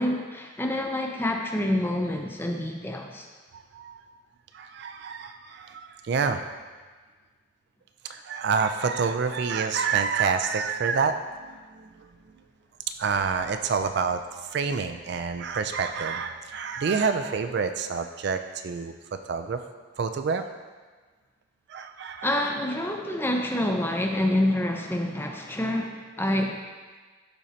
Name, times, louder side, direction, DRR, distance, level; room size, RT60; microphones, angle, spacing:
voice 1, 0.0-3.3 22.2-26.6, left 1 dB, 10° left, 2 dB, 0.5 m, -27 dB
voice 2, 3.5-4.0 4.5-6.4 8.1-11.1 11.4-12.1 13.0-14.2 14.5-18.9 19.3-19.6 20.0-20.4 21.7-22.5, right 5 dB, 55° right, 8 dB, 0.3 m, -28 dB
12.0 x 4.4 x 2.8 m, 1.4 s
head